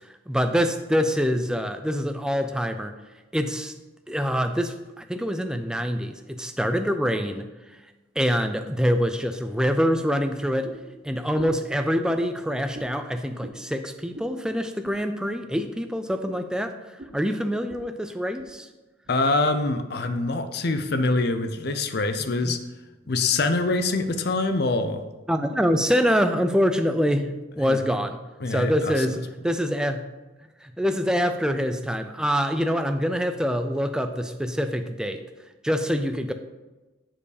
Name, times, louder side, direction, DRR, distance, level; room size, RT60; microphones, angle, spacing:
voice 1, 0.3-2.9 3.3-3.7 4.1-7.5 8.2-10.7 11.0-16.7 17.1-18.7 22.4-22.6 25.3-28.2 28.5-30.0 30.6-35.2 35.6-36.3, equal, 5° right, 7 dB, 0.4 m, -25 dB
sound 1, 10.6-10.9 11.3-11.7 12.1-12.2 12.7-12.9 13.4-13.6 14.1-14.3 14.8-15.0 15.5-15.7 16.2-16.5 17.0-17.2 17.7-17.9 18.2-18.5 19.0-19.2 19.8-19.9, right 1 dB, 35° right, 0.7 m, -42 dB
voice 2, 19.1-22.6 23.1-25.0 27.6-27.8 28.4-29.1, left 3 dB, 50° left, 9 dB, 0.6 m, -24 dB
7.4 x 4.6 x 4.9 m, 1.1 s
head